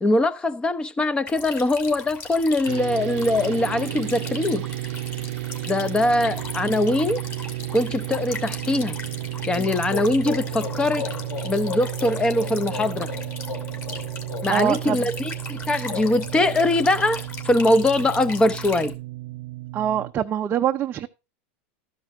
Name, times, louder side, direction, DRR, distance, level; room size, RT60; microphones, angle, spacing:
voice 1, 0.0-4.7 5.7-7.3 7.7-9.0 9.5-11.1 11.4-13.1 14.4-19.0, left 2 dB, 15° left, 0.7 m, -22 dB
sound 1, 1.3-18.9, left 4 dB, 35° left, 2.8 m, -38 dB
sound 2, 2.7-20.1, right 17 dB, 70° right, 0.7 m, -33 dB
sound 3, 9.5-17.3, left 8 dB, 50° left, 3.1 m, -37 dB
voice 2, 14.5-15.0 19.7-21.1, right 10 dB, 30° right, 0.5 m, -24 dB
13.0 x 5.3 x 4.7 m
supercardioid pair, 125°, 6 cm